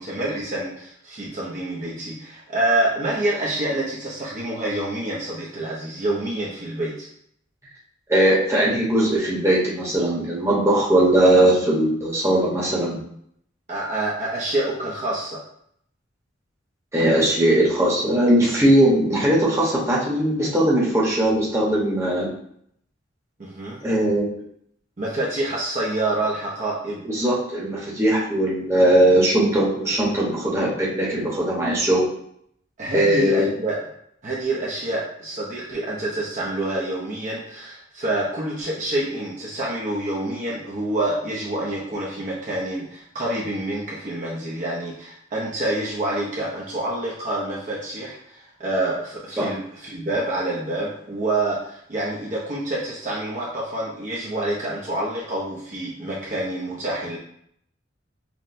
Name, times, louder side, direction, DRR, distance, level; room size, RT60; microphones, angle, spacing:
voice 1, 0.0-7.1 13.7-15.4 23.4-23.8 25.0-27.0 32.8-33.8 34.2-57.2, right 1 dB, 40° right, -5 dB, 0.6 m, -27 dB
voice 2, 8.1-13.0 16.9-22.3 23.8-24.2 27.1-32.1 32.9-33.5 49.4-49.5, right 1 dB, 15° right, -5 dB, 0.9 m, -19 dB
5.7 x 2.1 x 2.5 m, 0.69 s
head